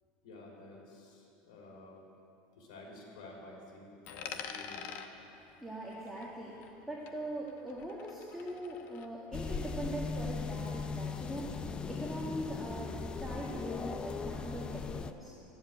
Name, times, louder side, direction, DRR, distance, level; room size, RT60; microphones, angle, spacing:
voice 1, 0.2-2.0 2.6-4.9, left 2 dB, 85° left, -2 dB, 3.6 m, -51 dB
Coin (dropping), 4.0-6.8 7.1-9.1, left 7 dB, 50° left, 0.9 m, -47 dB
voice 2, 5.3-15.4, right 1 dB, ahead, -6 dB, 1.7 m, -42 dB
sound 1, 9.3-15.1, left 5 dB, 20° left, 0.5 m, -38 dB
12.0 x 7.9 x 8.7 m, 2.8 s
supercardioid pair, 130°, 4 cm